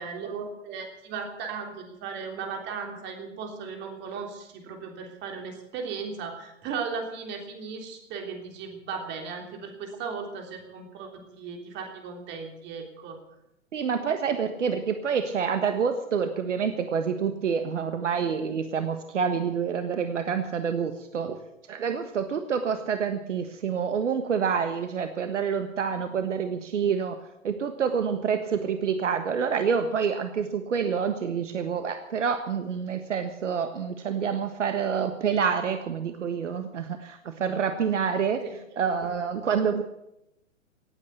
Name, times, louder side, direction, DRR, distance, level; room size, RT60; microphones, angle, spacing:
voice 1, 0.0-13.2 38.4-38.6, right 5 dB, 25° right, 4 dB, 3.3 m, -36 dB
voice 2, 13.7-21.4 21.7-27.2 27.4-38.4 38.8-39.8, right 6 dB, 65° right, 8 dB, 1.5 m, -27 dB
18.0 x 8.8 x 8.3 m, 0.84 s
figure-of-eight pair, 120°, 38 cm